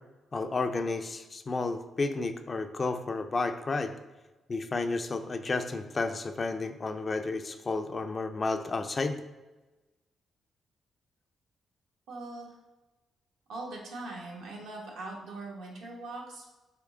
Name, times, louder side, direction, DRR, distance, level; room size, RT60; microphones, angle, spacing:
voice 1, 0.3-3.9 4.5-9.2, left 3 dB, 40° left, 8 dB, 0.4 m, -31 dB
voice 2, 12.1-12.5 13.5-16.5, right 2 dB, 80° right, -2 dB, 1.0 m, -41 dB
3.6 x 2.9 x 3.5 m, 1.1 s
supercardioid pair, 50°, 0 cm